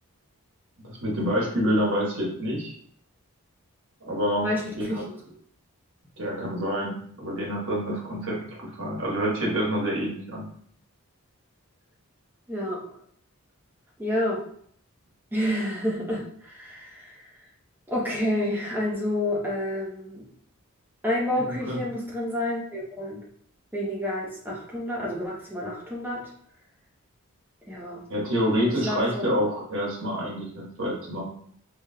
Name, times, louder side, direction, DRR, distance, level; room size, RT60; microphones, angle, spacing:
voice 1, 0.8-2.7 4.0-4.5 4.8-5.0 6.2-10.5 21.4-21.8 28.1-31.2, equal, 60° right, -3 dB, 1.3 m, -27 dB
voice 2, 4.4-5.1 12.5-12.8 14.0-14.4 15.3-17.2 17.9-20.2 21.0-23.2 23.7-26.3 27.7-28.0 28.8-29.2, left 1 dB, 10° right, -4 dB, 0.8 m, -29 dB
4.0 x 3.3 x 2.2 m, 0.62 s
head